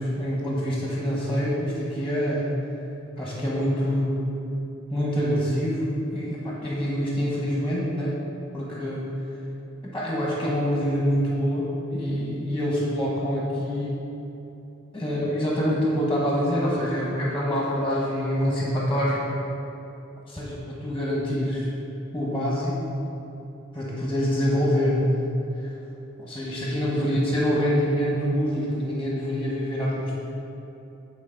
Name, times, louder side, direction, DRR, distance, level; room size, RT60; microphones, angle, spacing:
voice 1, 0.0-2.5 3.2-4.2 4.9-5.8 6.1-8.2 8.5-9.1 9.9-14.0 14.9-19.2 20.3-21.7 22.1-22.8 23.7-25.2 25.5-25.8 26.2-30.1, equal, 5° left, -5 dB, 1.1 m, -25 dB
8.4 x 3.9 x 5.1 m, 3.0 s
head